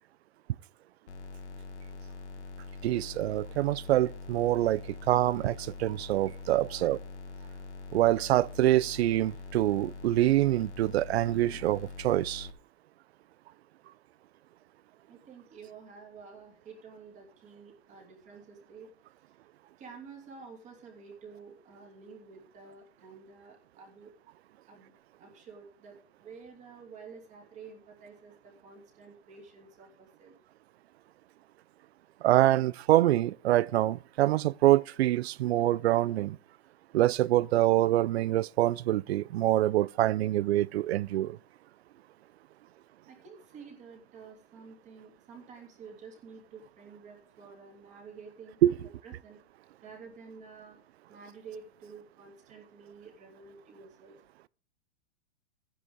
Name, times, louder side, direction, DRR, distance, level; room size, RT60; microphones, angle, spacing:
sound 1, 1.1-12.5, left 3 dB, 85° left, 1.7 m, -44 dB
voice 1, 2.8-7.0 7.9-12.5 32.2-36.4 36.9-41.4 48.6-48.8, right 14 dB, 70° right, 0.5 m, -25 dB
voice 2, 6.6-6.9 15.1-18.9 19.8-24.1 24.7-24.9 25.2-30.3 43.1-49.4 49.8-50.8 51.1-54.1, right 5 dB, 20° right, 3.0 m, -50 dB
14.0 x 10.0 x 3.7 m
hypercardioid pair, 160°, 33 cm